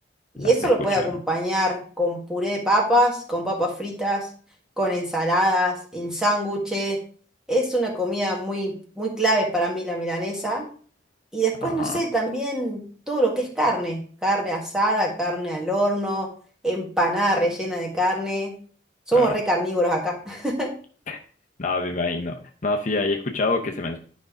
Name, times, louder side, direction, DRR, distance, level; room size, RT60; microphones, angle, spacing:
voice 1, 0.4-4.3 4.8-7.0 7.5-10.7 11.3-16.3 16.6-18.5 19.1-20.7, right 1 dB, 5° right, 0 dB, 1.7 m, -24 dB
voice 2, 11.6-12.0 19.1-19.3 21.1-21.2 21.6-22.4 22.6-24.0, left 3 dB, 45° left, 3 dB, 0.8 m, -26 dB
10.5 x 5.3 x 3.7 m, 0.42 s
head